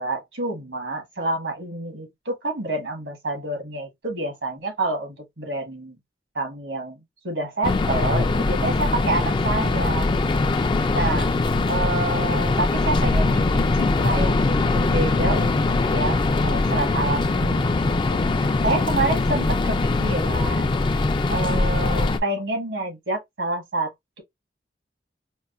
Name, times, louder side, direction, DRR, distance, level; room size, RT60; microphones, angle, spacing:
voice 1, 0.0-6.0 6.3-7.0 7.2-10.1 10.9-11.4 11.6-17.8 18.1-20.8 21.3-23.9, right 2 dB, 80° right, 1.4 m, -28 dB
sound 1, 7.6-22.2, left 3 dB, 25° left, 0.3 m, -22 dB
4.6 x 2.2 x 2.5 m
head